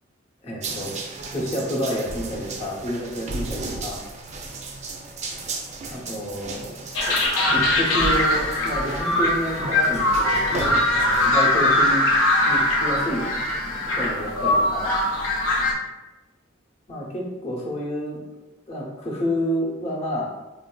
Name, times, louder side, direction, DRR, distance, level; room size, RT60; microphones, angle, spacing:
voice 1, 0.4-0.9 1.3-4.1 5.9-6.8 7.5-10.5 11.0-12.1 12.4-13.2 13.9-15.0 16.9-18.2 18.7-20.3, equal, 30° left, -4 dB, 0.7 m, -29 dB
sound 1, 0.6-11.3, right 2 dB, 35° right, 0.4 m, -34 dB
sound 2, 6.9-15.7, left 1 dB, 90° left, 0.5 m, -21 dB
3.8 x 2.5 x 2.2 m, 1.1 s
head